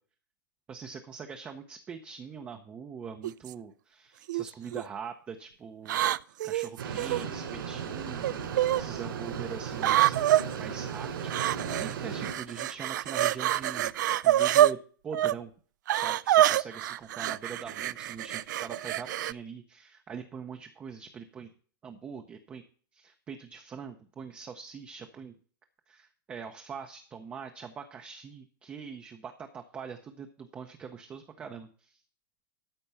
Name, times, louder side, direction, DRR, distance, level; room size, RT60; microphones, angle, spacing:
voice 1, 0.7-14.8 15.0-15.5 15.9-21.5 21.8-22.6 22.9-25.4 25.9-32.0, right 6 dB, 10° right, 5 dB, 0.6 m, -43 dB
sound 1, 3.2-3.5 4.3-4.8 5.9-7.2 8.2-8.8 9.8-10.4 11.3-11.9 12.2-14.7 15.1-15.3 15.9-19.3, right 13 dB, 60° right, 0.4 m, -26 dB
sound 2, 6.8-12.3, right 7 dB, 75° right, 3.4 m, -36 dB
13.0 x 4.4 x 6.8 m, 0.42 s
supercardioid pair, 175°, 12 cm